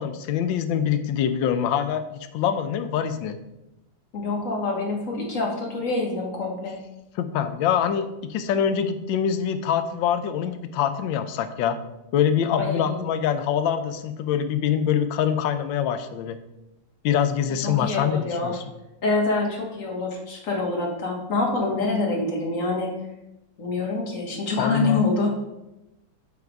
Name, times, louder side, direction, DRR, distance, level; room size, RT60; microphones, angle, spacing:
voice 1, 0.0-3.4 7.2-11.8 12.1-16.4 17.0-18.6 24.6-25.0, left 8 dB, 85° left, 9 dB, 1.3 m, -24 dB
voice 2, 4.1-6.8 12.6-13.0 17.6-18.6 19.0-22.9 23.6-25.3, left 3 dB, 50° left, 0 dB, 1.5 m, -26 dB
7.9 x 3.5 x 4.5 m, 0.92 s
omnidirectional pair, 2.0 m